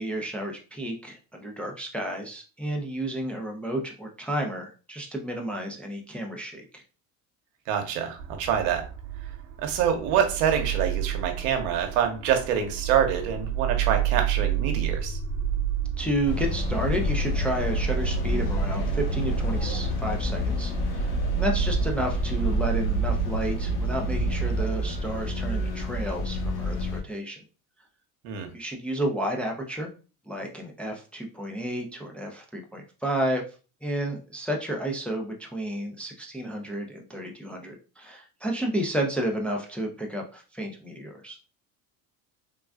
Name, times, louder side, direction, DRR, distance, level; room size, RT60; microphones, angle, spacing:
voice 1, 0.0-6.8 16.0-27.4 28.5-29.9 30.3-33.4 33.8-41.4, right 1 dB, 5° left, 1 dB, 0.4 m, -31 dB
voice 2, 7.7-8.8 9.6-15.2 28.2-28.5, right 8 dB, 80° right, 5 dB, 0.8 m, -26 dB
sound 1, 8.2-24.6, right 10 dB, 50° right, 0.7 m, -30 dB
sound 2, 16.2-27.0, left 2 dB, 70° left, 1.0 m, -29 dB
3.4 x 2.3 x 2.3 m, 0.35 s
supercardioid pair, 90°, 41 cm